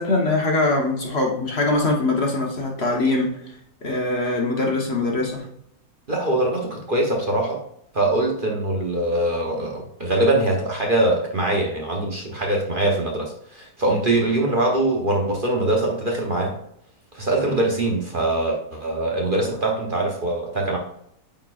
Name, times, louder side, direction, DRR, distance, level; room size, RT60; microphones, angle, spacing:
voice 1, 0.0-3.4 3.8-5.4, left 2 dB, 45° left, 1 dB, 1.3 m, -22 dB
voice 2, 6.1-7.6 7.9-16.6 17.1-20.8, right 1 dB, 40° right, 0 dB, 1.1 m, -23 dB
8.8 x 4.5 x 2.4 m, 0.72 s
omnidirectional pair, 1.6 m